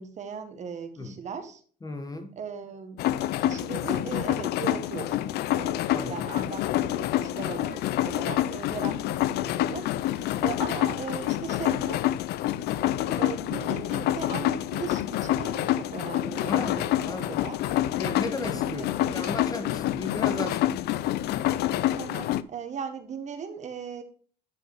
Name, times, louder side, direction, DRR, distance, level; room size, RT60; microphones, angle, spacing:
voice 1, 0.0-1.6 2.4-10.0 10.4-12.6 13.1-17.6 18.5-19.3 21.9-24.0, right 6 dB, 45° right, 1.4 m, -38 dB
voice 2, 1.8-2.3 5.9-6.3 16.5-17.4 17.9-20.8, left 2 dB, 20° left, 1.1 m, -35 dB
sound 1, 3.0-22.4, left 13 dB, 75° left, 0.5 m, -27 dB
9.8 x 4.6 x 4.6 m
cardioid pair, 110°, 17 cm